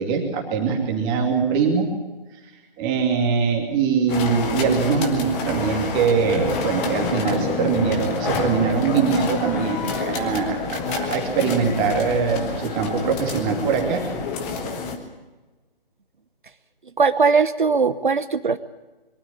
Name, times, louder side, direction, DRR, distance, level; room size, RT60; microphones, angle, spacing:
voice 1, 0.0-1.9 2.8-14.0, right 5 dB, 15° right, 2 dB, 2.6 m, -22 dB
sound 1, 4.1-15.0, left 4 dB, 15° left, 1.5 m, -28 dB
voice 2, 17.0-18.6, right 5 dB, 55° right, 12 dB, 1.0 m, -19 dB
22.5 x 12.5 x 10.0 m, 1.2 s
figure-of-eight pair, 145°, 29 cm